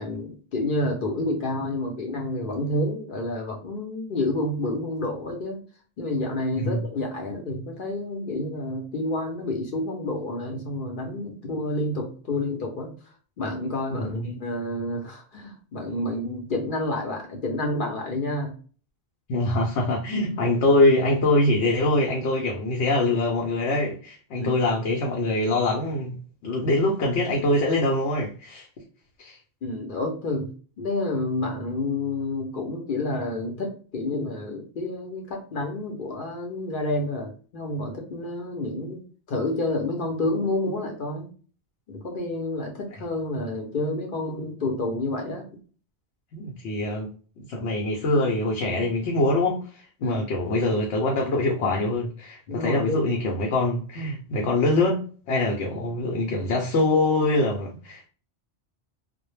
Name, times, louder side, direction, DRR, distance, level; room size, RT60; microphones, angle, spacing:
voice 1, 0.0-5.6 6.0-12.9 13.4-18.5 24.4-24.6 29.6-30.5 30.8-39.0 39.3-41.3 41.9-45.5 50.0-50.2 52.5-53.0, left 2 dB, 55° left, 2 dB, 0.7 m, -29 dB
voice 2, 13.9-14.3 19.3-28.7 29.2-29.4 46.3-47.1 47.4-58.1, left 2 dB, 85° left, -1 dB, 0.9 m, -24 dB
2.1 x 2.1 x 3.0 m, 0.39 s
omnidirectional pair, 1.1 m